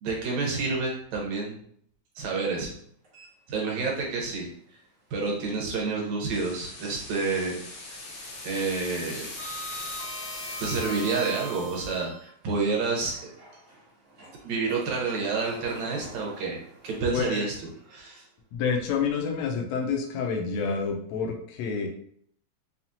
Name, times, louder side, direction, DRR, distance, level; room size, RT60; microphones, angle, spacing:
voice 1, 0.0-1.6 2.2-2.8 3.5-4.5 5.1-7.6 7.9-8.0 8.4-9.3 10.6-13.3 14.4-16.6 16.8-17.5 17.9-18.2, right 4 dB, 80° right, -1 dB, 2.3 m, -29 dB
Sliding door, 3.0-4.0 4.4-4.5 6.2-7.3 7.6-12.3 13.0-18.2, right 1 dB, 50° right, 0.8 m, -43 dB
sound 1, 6.3-12.0, left 2 dB, 55° left, 1.2 m, -40 dB
voice 2, 18.5-21.9, left 5 dB, 75° left, 1 dB, 1.8 m, -28 dB
5.6 x 2.4 x 2.8 m, 0.63 s
omnidirectional pair, 3.3 m